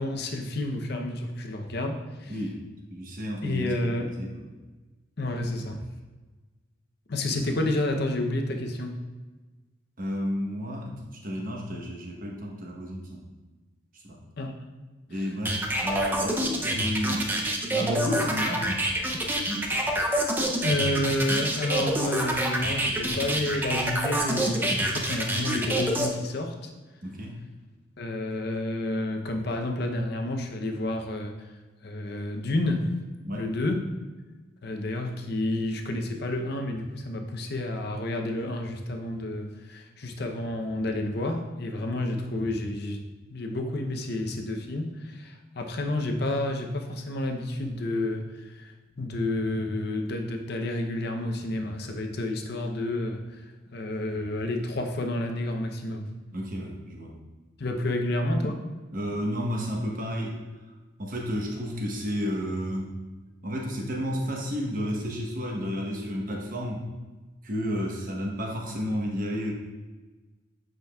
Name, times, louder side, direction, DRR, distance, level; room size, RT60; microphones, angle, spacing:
voice 1, 0.0-2.4 3.4-4.1 5.2-5.8 7.1-9.0 14.4-14.5 15.1-15.2 20.6-26.7 28.0-31.5 31.8-32.9 33.3-33.8 34.6-43.0 43.3-56.1 57.6-58.7, left 1 dB, 55° left, 4 dB, 0.7 m, -30 dB
voice 2, 2.3-2.6 2.9-4.4 7.3-7.4 10.0-13.2 14.0-14.2 15.1-17.3 17.6-18.9 27.0-27.4 33.2-33.5 56.3-57.1 58.9-60.4 61.0-63.0 63.4-66.9 67.4-69.5, equal, 45° right, -1 dB, 1.0 m, -32 dB
sound 1, 15.4-26.1, right 1 dB, 10° right, 0.5 m, -27 dB
7.9 x 5.1 x 2.3 m, 1.3 s
head